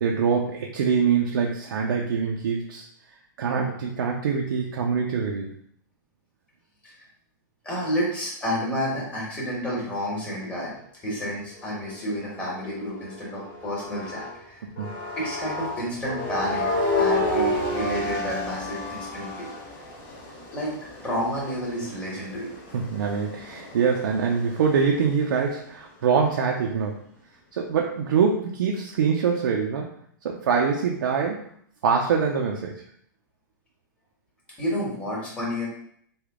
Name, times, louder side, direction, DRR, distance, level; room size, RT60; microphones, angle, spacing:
voice 1, 0.0-2.9 3.4-5.5 14.8-15.0 22.7-27.0 27.5-29.9 30.2-31.5 31.8-32.8, right 6 dB, 90° right, -1 dB, 0.5 m, -24 dB
voice 2, 7.6-10.7 11.0-14.6 15.2-16.6 16.9-19.5 20.5-20.7 21.0-22.5 34.6-35.7, equal, 10° left, -6 dB, 1.2 m, -30 dB
sound 1, 11.5-14.4 14.8-25.2, left 1 dB, 55° left, 1.3 m, -31 dB
3.4 x 2.3 x 3.5 m, 0.65 s
supercardioid pair, 150°, 11 cm